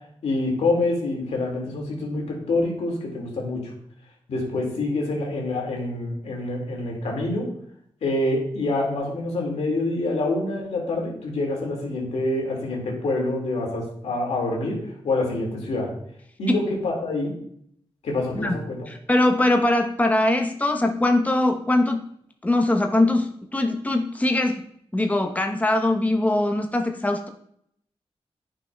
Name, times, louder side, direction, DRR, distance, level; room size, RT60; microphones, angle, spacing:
voice 1, 0.2-3.7 4.3-7.5 8.0-14.8 15.0-15.9 16.4-17.3 18.0-18.9, left 2 dB, 85° left, -1 dB, 2.0 m, -26 dB
voice 2, 18.9-22.0 22.4-24.6 24.9-27.3, left 1 dB, 15° left, 3 dB, 0.9 m, -22 dB
9.6 x 5.5 x 2.3 m, 0.68 s
cardioid pair, 55°, 11 cm